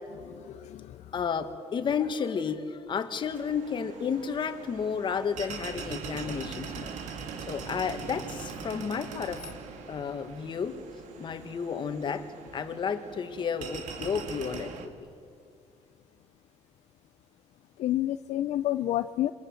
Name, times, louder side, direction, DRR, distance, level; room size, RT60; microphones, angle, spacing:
voice 1, 0.2-1.0 17.8-19.3, left 13 dB, 65° left, 11 dB, 0.6 m, -30 dB
voice 2, 1.1-6.9 7.5-9.5 9.9-10.8 11.2-12.3 12.5-14.9, left 6 dB, 40° left, 8 dB, 1.8 m, -32 dB
sound 1, 3.2-14.9, right 6 dB, 85° right, 2.5 m, -42 dB
27.0 x 24.5 x 7.8 m, 2.4 s
cardioid pair, 130°, 12 cm